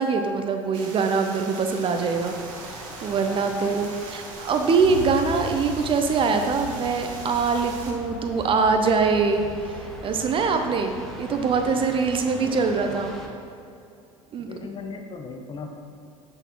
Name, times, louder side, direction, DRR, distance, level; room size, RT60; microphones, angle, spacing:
voice 1, 0.0-9.5 10.0-13.2 14.3-14.5, right 5 dB, 30° right, 5 dB, 0.5 m, -23 dB
sound 1, 0.7-7.9, right 3 dB, 50° right, 1.1 m, -41 dB
sound 2, 1.9-13.3, equal, ahead, 1.0 m, -43 dB
voice 2, 3.1-3.8 12.4-12.8 14.4-15.7, left 4 dB, 30° left, 4 dB, 0.8 m, -39 dB
sound 3, 4.8-11.7, left 2 dB, 75° left, 1.3 m, -40 dB
7.6 x 6.2 x 3.0 m, 2.6 s
figure-of-eight pair, 70°, 18 cm